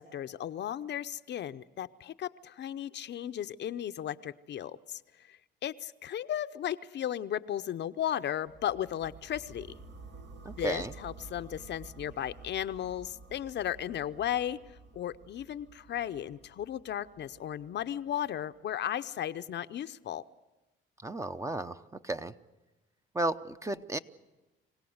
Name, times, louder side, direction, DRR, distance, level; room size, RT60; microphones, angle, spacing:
voice 1, 0.0-5.0 5.3-9.7 10.6-14.6 14.9-20.2, left 10 dB, 60° left, 11 dB, 0.7 m, -35 dB
sound 1, 8.5-18.4, right 3 dB, 60° right, 1.6 m, -51 dB
voice 2, 10.4-10.9 21.0-22.3 23.1-24.0, right 2 dB, 15° right, 10 dB, 0.8 m, -34 dB
25.5 x 17.0 x 8.0 m, 1.0 s
cardioid pair, 90°, 20 cm